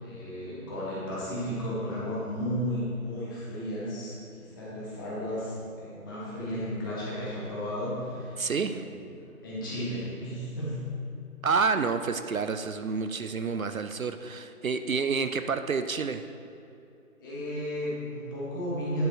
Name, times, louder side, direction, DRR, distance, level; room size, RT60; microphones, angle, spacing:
voice 1, 0.0-9.0 9.4-10.7 17.2-19.1, equal, 15° left, -8 dB, 1.7 m, -34 dB
voice 2, 8.4-8.9 11.4-16.2, right 5 dB, 65° right, 9 dB, 0.6 m, -29 dB
10.0 x 6.7 x 4.4 m, 2.7 s
figure-of-eight pair, 150°, 45 cm